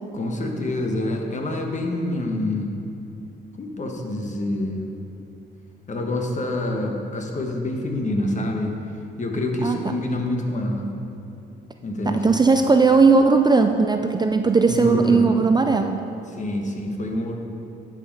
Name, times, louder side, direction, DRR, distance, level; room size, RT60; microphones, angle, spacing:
voice 1, 0.1-2.7 3.6-4.9 5.9-8.7 9.2-10.9 11.8-12.3 14.7-15.5 16.3-17.4, left 1 dB, 35° left, 2 dB, 1.3 m, -26 dB
voice 2, 12.1-16.0, right 4 dB, 20° right, 6 dB, 0.4 m, -17 dB
11.0 x 5.1 x 5.5 m, 2.7 s
cardioid pair, 90°, 20 cm